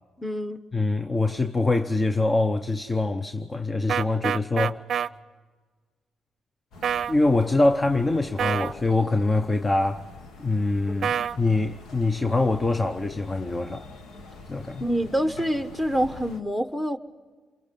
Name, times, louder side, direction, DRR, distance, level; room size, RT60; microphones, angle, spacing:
voice 1, 0.2-0.6 11.1-11.3 14.8-17.0, equal, 5° left, 1.2 m, -26 dB
voice 2, 0.7-4.8 7.1-10.0 10.4-13.9 14.5-14.8, left 2 dB, 25° left, 0.8 m, -24 dB
sound 1, 3.9-5.1 6.8-7.1 8.4-8.7 11.0-11.4, right 8 dB, 60° right, 0.6 m, -26 dB
sound 2, 6.7-16.4, left 3 dB, 80° left, 1.9 m, -45 dB
29.0 x 23.5 x 5.4 m
cardioid pair, 90°, 0 cm